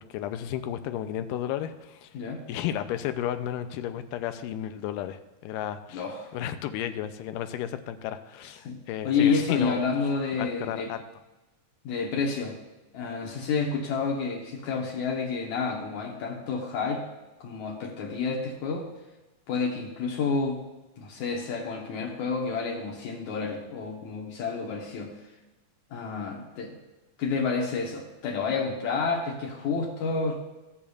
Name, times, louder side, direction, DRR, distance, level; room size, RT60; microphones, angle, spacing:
voice 1, 0.1-2.1 2.5-6.0 6.3-9.8 10.4-11.0, left 11 dB, 85° left, 10 dB, 2.2 m, -33 dB
voice 2, 5.9-6.3 8.6-8.8 9.0-10.9 11.8-12.6 12.9-17.0 17.4-18.9 19.5-20.6 21.0-25.1 25.9-26.8 27.2-30.4, left 5 dB, 70° left, 0 dB, 2.2 m, -29 dB
14.0 x 8.5 x 2.3 m, 1.1 s
omnidirectional pair, 3.7 m